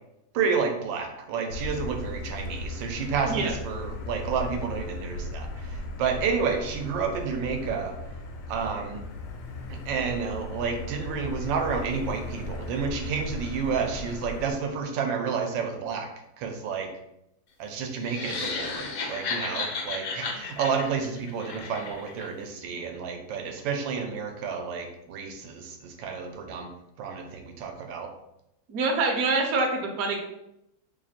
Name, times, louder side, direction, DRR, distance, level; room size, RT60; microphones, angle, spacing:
voice 1, 0.3-7.9 8.5-9.0 9.7-16.1 16.4-16.9 17.6-26.7 27.0-28.1, right 5 dB, 85° right, 4 dB, 1.3 m, -30 dB
Motor vehicle (road), 1.5-14.5, left 1 dB, 80° left, 1.3 m, -37 dB
sound 1, 18.0-22.3, left 4 dB, 65° left, 1.0 m, -33 dB
voice 2, 28.7-30.2, right 3 dB, 65° right, 1 dB, 0.9 m, -25 dB
3.2 x 2.5 x 4.0 m, 0.84 s
omnidirectional pair, 2.0 m